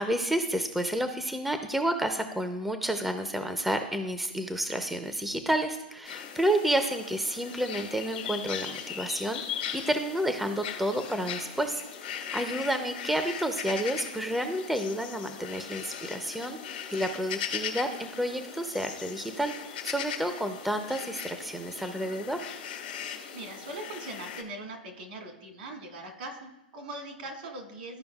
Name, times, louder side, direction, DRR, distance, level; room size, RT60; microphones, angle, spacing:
voice 1, 0.0-19.5 19.8-22.5, right 1 dB, 5° right, 7 dB, 0.5 m, -30 dB
birds quiet morning, 6.1-24.4, left 8 dB, 75° left, 1.3 m, -39 dB
voice 2, 23.3-28.0, right 2 dB, 70° right, 2 dB, 1.9 m, -41 dB
13.0 x 5.0 x 2.3 m, 0.94 s
hypercardioid pair, 115°, 5 cm